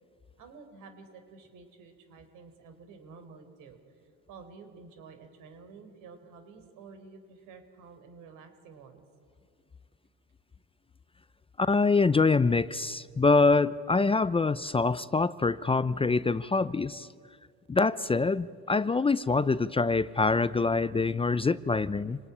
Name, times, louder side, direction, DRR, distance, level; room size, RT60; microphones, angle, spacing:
voice 1, 0.4-3.8 4.3-9.0, right 4 dB, 75° right, 7 dB, 4.2 m, -50 dB
voice 2, 11.6-17.1 17.7-22.2, left 3 dB, 15° left, 16 dB, 0.6 m, -25 dB
27.5 x 18.5 x 9.9 m, 2.2 s
supercardioid pair, 80°, 32 cm